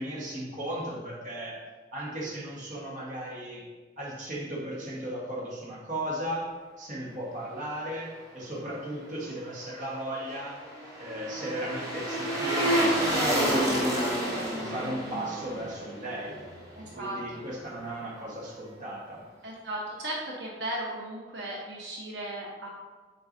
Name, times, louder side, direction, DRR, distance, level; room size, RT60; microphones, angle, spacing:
voice 1, 0.0-3.7 4.0-10.6 11.0-14.2 14.5-16.4 16.8-19.2, right 1 dB, 45° right, -4 dB, 1.4 m, -36 dB
sound 1, 9.9-17.1 17.4-17.5, right 1 dB, 20° right, 1.5 m, -29 dB
voice 2, 16.7-17.4 19.4-22.7, right 1 dB, 80° right, -3 dB, 1.0 m, -36 dB
7.8 x 4.6 x 2.6 m, 1.4 s
head